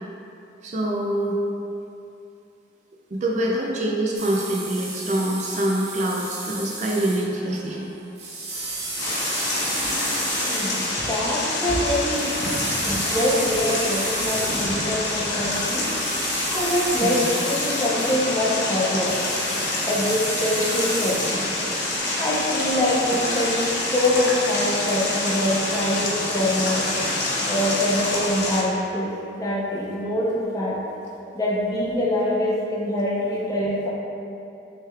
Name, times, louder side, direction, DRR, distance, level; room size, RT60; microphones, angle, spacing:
voice 1, 0.6-1.4 3.1-7.9 17.0-17.2 23.2-23.3, right 1 dB, 40° right, -2 dB, 0.3 m, -25 dB
sound 1, 4.1-7.3 7.6-7.7 7.9-14.7 15.5-22.0, right 2 dB, 55° right, 0.9 m, -33 dB
sound 2, 8.9-28.6, left 2 dB, 65° left, 0.7 m, -26 dB
voice 2, 10.5-12.4 12.8-15.9 16.5-19.2 19.9-21.5 22.2-26.9 27.5-30.8 31.3-33.9, left 1 dB, 20° left, -6 dB, 0.6 m, -24 dB
6.3 x 3.2 x 2.3 m, 2.7 s
head